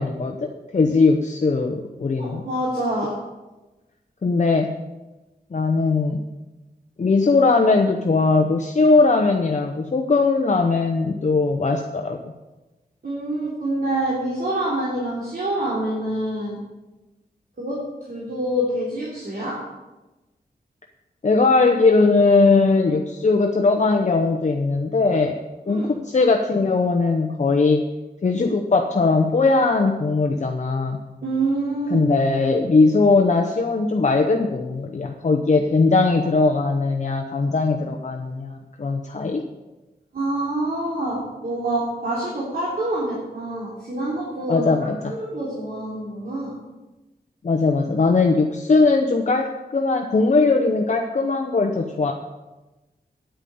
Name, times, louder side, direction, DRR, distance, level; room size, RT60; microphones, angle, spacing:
voice 1, 0.0-2.4 4.2-4.7 5.5-6.2 7.0-12.2 21.2-25.4 25.7-27.8 28.2-31.0 31.9-39.4 44.5-45.1 47.4-52.1, left 3 dB, 45° left, 3 dB, 0.9 m, -19 dB
voice 2, 2.2-3.1 13.0-16.6 17.6-17.8 18.1-19.6 25.7-25.9 31.2-32.0 40.1-44.7 45.1-46.6, right 1 dB, 60° right, -6 dB, 3.4 m, -26 dB
10.0 x 8.9 x 7.1 m, 1.1 s
wide cardioid pair, 105°, 17 cm